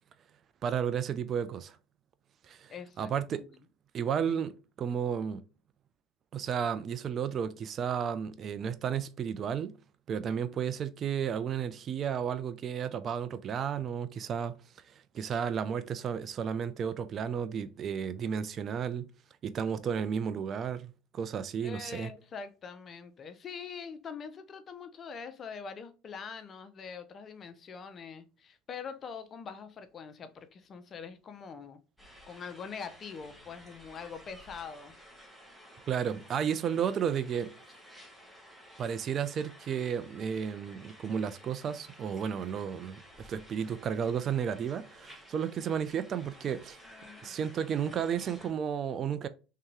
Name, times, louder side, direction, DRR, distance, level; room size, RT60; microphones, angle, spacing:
voice 1, 0.6-1.8 2.5-3.4 3.9-5.4 6.3-9.8 10.1-14.5 14.9-19.1 19.4-22.1 35.9-37.5 38.8-46.8 47.2-49.3, right 7 dB, 45° right, 0.4 m, -33 dB
voice 2, 2.7-3.5 21.6-31.8 32.3-35.0 46.9-47.3, left 6 dB, 40° left, 0.6 m, -44 dB
sound 1, 32.0-48.5, equal, ahead, 1.2 m, -54 dB
3.4 x 2.8 x 3.1 m
hypercardioid pair, 80°, 0 cm